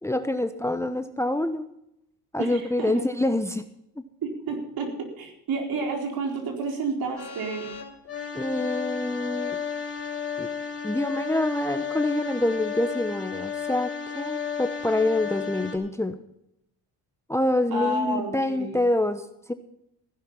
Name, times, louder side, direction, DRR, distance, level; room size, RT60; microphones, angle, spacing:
voice 1, 0.0-1.6 2.3-3.7 8.3-9.6 10.4-10.5 10.8-16.2 17.3-19.5, left 1 dB, 5° left, 10 dB, 1.0 m, -26 dB
voice 2, 2.4-3.0 4.2-4.9 5.2-7.7 17.7-18.8, right 3 dB, 60° right, 3 dB, 4.4 m, -30 dB
sound 1, 7.2-15.8, left 7 dB, 35° left, 3.6 m, -33 dB
15.5 x 10.5 x 5.6 m, 0.79 s
supercardioid pair, 85°, 40 cm